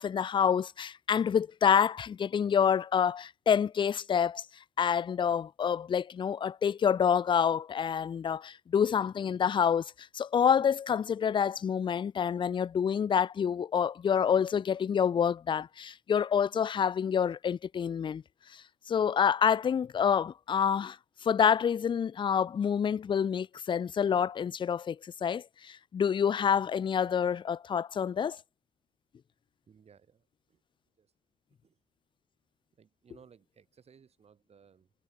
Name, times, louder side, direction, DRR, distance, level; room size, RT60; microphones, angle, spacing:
voice 1, 0.0-4.4 4.8-18.2 18.5-21.0 21.2-28.4, left 7 dB, 30° left, 0.5 m, -27 dB
voice 2, 29.7-30.6 31.0-31.1 31.6-31.8 32.7-34.9, right 7 dB, 40° right, 6.5 m, -60 dB
cardioid pair, 110°, 17 cm